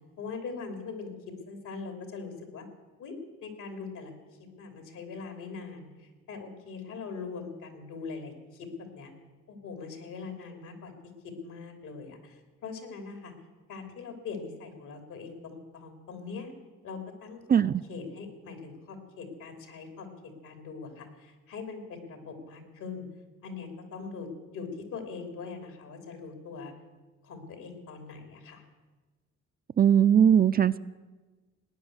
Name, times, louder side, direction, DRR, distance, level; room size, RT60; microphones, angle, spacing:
voice 1, 0.2-2.6 3.0-3.1 3.4-4.1 4.6-9.1 9.5-10.9 11.2-13.3 13.7-16.5 16.8-17.4 17.9-20.1 20.4-23.1 23.4-26.7 27.2-28.6, left 4 dB, 80° left, 5 dB, 3.2 m, -41 dB
voice 2, 17.5-17.8 29.8-30.8, right 8 dB, 30° right, 13 dB, 0.4 m, -20 dB
18.5 x 9.8 x 8.0 m, 1.3 s
cardioid pair, 90°, 30 cm